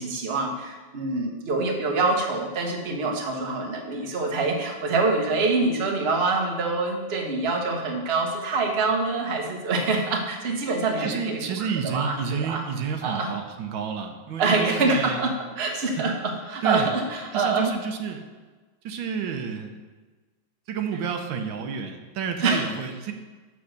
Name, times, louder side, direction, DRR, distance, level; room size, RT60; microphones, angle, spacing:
voice 1, 0.0-11.4 11.8-12.6 13.0-13.3 14.4-17.7 22.4-22.6, right 3 dB, 35° right, 1 dB, 1.3 m, -25 dB
voice 2, 11.0-15.3 16.0-16.1 16.6-16.9 17.3-18.3 18.8-19.7 20.7-23.1, right 6 dB, 85° right, 5 dB, 1.6 m, -30 dB
7.0 x 6.0 x 6.5 m, 1.3 s
omnidirectional pair, 2.1 m